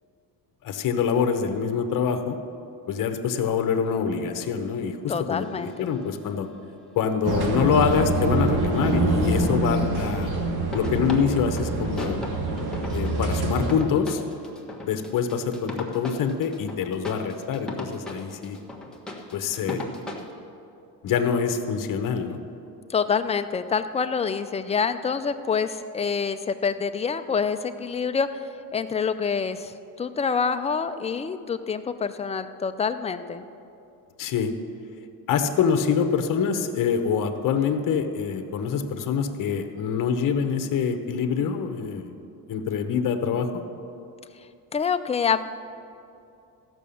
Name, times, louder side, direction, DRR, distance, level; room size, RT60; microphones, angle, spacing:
voice 1, 0.6-2.4 2.9-6.5 7.0-10.3 10.7-12.2 12.9-14.2 14.8-18.6 19.3-19.8 21.0-22.4 34.2-34.5 35.3-42.1 42.5-43.6, left 6 dB, 55° left, 7 dB, 1.0 m, -25 dB
voice 2, 5.1-5.9 22.9-28.4 28.7-33.5 44.7-45.4, left 6 dB, 15° left, 9 dB, 0.4 m, -26 dB
sound 1, 5.3-6.4 10.7-20.3, left 1 dB, ahead, 1.3 m, -37 dB
sound 2, 7.2-13.7, right 2 dB, 70° right, 1.9 m, -25 dB
14.5 x 6.0 x 7.0 m, 2.6 s
cardioid pair, 130°, 39 cm